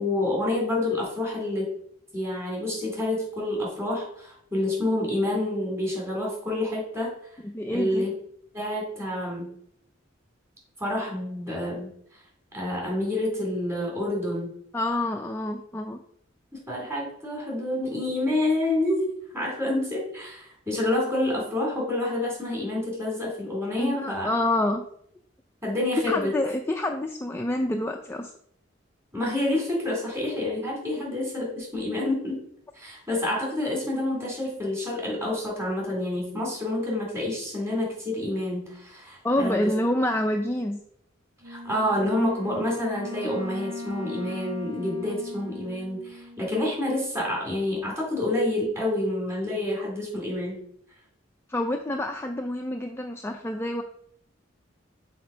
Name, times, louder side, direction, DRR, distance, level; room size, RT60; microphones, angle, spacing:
voice 1, 0.0-1.7 2.1-7.1 7.7-8.1 8.5-9.5 10.8-11.9 12.5-14.5 16.5-19.1 19.3-24.3 25.6-26.3 29.1-32.4 32.7-39.7 41.4-50.6, left 1 dB, 15° right, -3 dB, 3.1 m, -28 dB
voice 2, 7.5-8.1 14.7-16.0 23.8-24.8 26.1-28.3 39.2-40.8 51.5-53.8, left 1 dB, 10° left, 3 dB, 0.4 m, -27 dB
Wind instrument woodwind instrument, 41.4-46.9, equal, 80° right, 1.2 m, -39 dB
6.1 x 4.2 x 5.1 m, 0.66 s
head